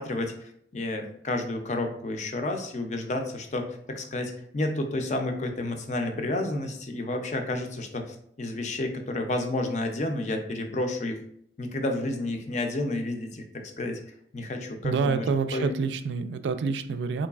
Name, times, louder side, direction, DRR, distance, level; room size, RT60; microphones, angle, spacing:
voice 1, 0.0-11.2 11.6-14.0 14.3-15.3 15.5-15.7, left 2 dB, 40° left, 5 dB, 0.5 m, -31 dB
voice 2, 14.8-17.3, right 5 dB, 80° right, 10 dB, 0.3 m, -27 dB
3.9 x 3.1 x 2.3 m, 0.68 s
head